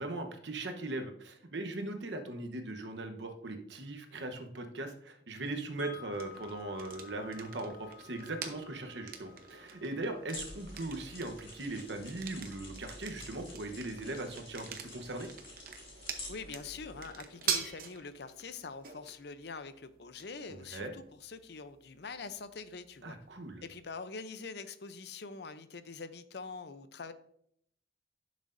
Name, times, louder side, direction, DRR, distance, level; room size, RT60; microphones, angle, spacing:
voice 1, 0.0-15.3 20.7-20.9 23.0-23.6, right 2 dB, 70° right, 6 dB, 1.0 m, -39 dB
Wind chime, 5.8-11.8, left 8 dB, 75° left, 2.6 m, -54 dB
sound 1, 6.1-23.9, right 7 dB, 50° right, 0.9 m, -45 dB
sound 2, 10.3-17.1, left 2 dB, 30° left, 2.5 m, -49 dB
voice 2, 16.3-23.2 23.6-27.1, left 4 dB, 60° left, 12 dB, 0.6 m, -44 dB
11.0 x 6.3 x 2.6 m, 0.70 s
head